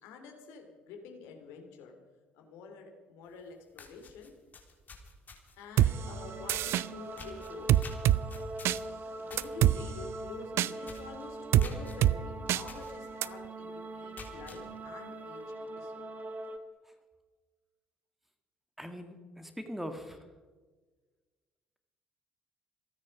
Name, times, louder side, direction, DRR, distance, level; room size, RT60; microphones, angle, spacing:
voice 1, 0.0-1.9 2.3-4.3 5.6-8.0 9.2-16.1, left 5 dB, 60° left, 4 dB, 3.1 m, -48 dB
sound 1, 3.3-3.4 3.7-5.7 6.5-6.8 7.2-9.5 9.9-10.1 10.4-10.5 10.8-11.1 11.6-12.0 12.7-12.9 13.4-13.5 14.0-14.6, left 4 dB, 35° left, 3.7 m, -48 dB
sound 2, 5.8-5.9 6.5-6.9 7.7-8.2 8.7-8.8 9.4-9.8 10.6-10.7 11.5-11.7 12.0-12.2 12.5-12.6 13.2-13.3, right 13 dB, 55° right, 0.5 m, -23 dB
sound 3, 5.9-16.6, right 2 dB, 35° right, 1.7 m, -43 dB
voice 2, 18.8-20.3, equal, 5° right, 7 dB, 1.9 m, -41 dB
27.5 x 9.6 x 5.3 m, 1.4 s
figure-of-eight pair, 50°, 5 cm